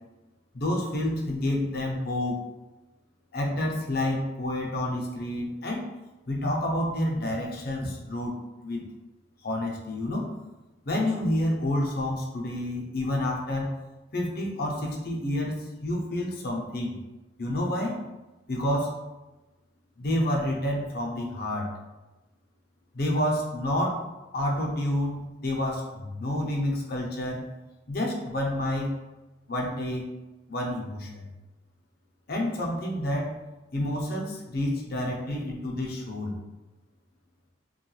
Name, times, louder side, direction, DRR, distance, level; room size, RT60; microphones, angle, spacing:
voice 1, 0.5-2.4 3.3-5.9 6.3-8.4 8.6-8.8 9.4-10.3 10.8-13.7 14.1-17.0 17.4-18.0 18.5-18.9 20.0-21.7 22.9-24.0 24.3-27.4 27.9-29.0 29.5-30.1 30.5-31.3 32.3-33.3 33.7-36.3, left 1 dB, 50° left, -1 dB, 0.6 m, -29 dB
3.1 x 2.3 x 3.1 m, 1.1 s
head